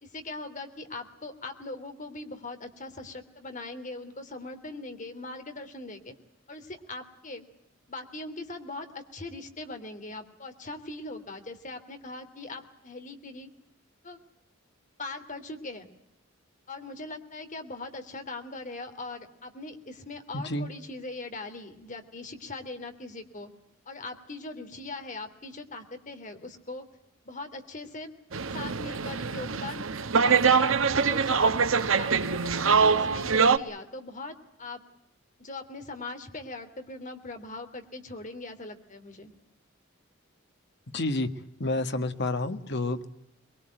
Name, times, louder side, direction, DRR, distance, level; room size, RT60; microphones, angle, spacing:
voice 1, 0.0-6.1 6.5-7.4 7.9-13.5 14.0-14.2 15.0-15.9 16.7-23.5 23.9-26.9 27.2-28.1 28.5-29.9 30.2-34.8 35.4-39.3, left 2 dB, 40° left, 7 dB, 2.9 m, -40 dB
voice 2, 20.3-20.7 40.9-41.3 41.6-43.1, left 2 dB, 55° left, 9 dB, 1.7 m, -29 dB
sound 1, 28.3-33.6, right 5 dB, 75° right, 1.1 m, -24 dB
23.0 x 22.5 x 9.0 m, 0.80 s
head